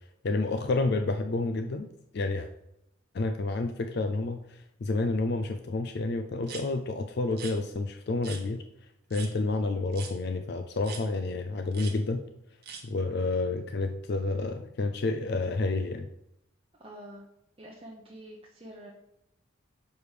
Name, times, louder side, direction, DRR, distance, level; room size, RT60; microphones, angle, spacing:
voice 1, 0.2-1.9 2.1-2.5 3.1-8.6 9.1-12.2 12.8-16.1, left 3 dB, 50° left, 7 dB, 0.4 m, -29 dB
sound 1, 6.4-6.6 7.3-7.5 8.2-8.4 9.1-9.3 9.9-10.1 10.8-11.0 11.7-11.9 12.6-12.8, right 6 dB, 50° right, 1.1 m, -41 dB
voice 2, 16.8-17.2 17.6-18.9, right 1 dB, 25° right, -3 dB, 0.8 m, -46 dB
6.4 x 5.0 x 4.9 m, 0.82 s
head